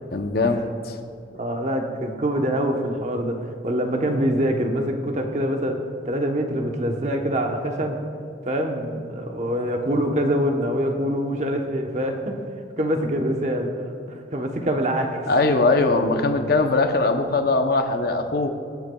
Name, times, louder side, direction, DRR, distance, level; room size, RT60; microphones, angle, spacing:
voice 1, 0.1-1.0 15.3-18.5, left 3 dB, 55° left, 6 dB, 0.7 m, -21 dB
voice 2, 1.3-3.4 3.6-5.8 6.1-8.0 8.5-12.4 12.8-13.7 14.1-15.1, equal, 40° right, 3 dB, 0.9 m, -24 dB
24.0 x 8.1 x 2.3 m, 2.5 s
head